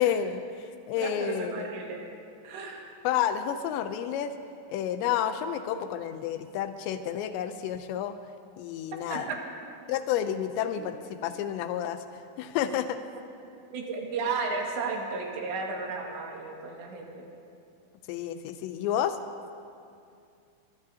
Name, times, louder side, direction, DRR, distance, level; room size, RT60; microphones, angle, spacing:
voice 1, 0.0-1.7 3.0-4.3 4.7-8.2 8.6-9.3 9.9-12.0 12.4-13.0 18.1-19.2, left 10 dB, 90° left, 9 dB, 2.9 m, -30 dB
voice 2, 1.0-2.0 2.4-3.0 9.1-9.4 10.8-10.9 13.7-17.3, right 4 dB, 85° right, -1 dB, 4.2 m, -34 dB
22.5 x 22.0 x 2.8 m, 2.4 s
omnidirectional pair, 5.0 m